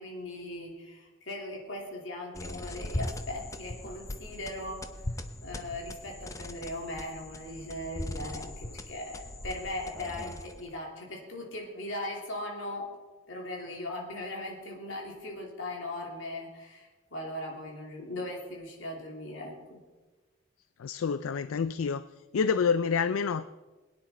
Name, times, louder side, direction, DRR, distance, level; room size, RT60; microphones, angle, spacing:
voice 1, 0.0-4.8 5.4-12.9 13.3-19.8, left 1 dB, 70° left, -1 dB, 3.1 m, -39 dB
sound 1, 2.3-10.8, left 1 dB, 15° left, 0.6 m, -40 dB
voice 2, 20.8-22.1 22.3-23.5, left 6 dB, 85° left, 14 dB, 0.4 m, -28 dB
21.5 x 9.5 x 4.3 m, 1.2 s
head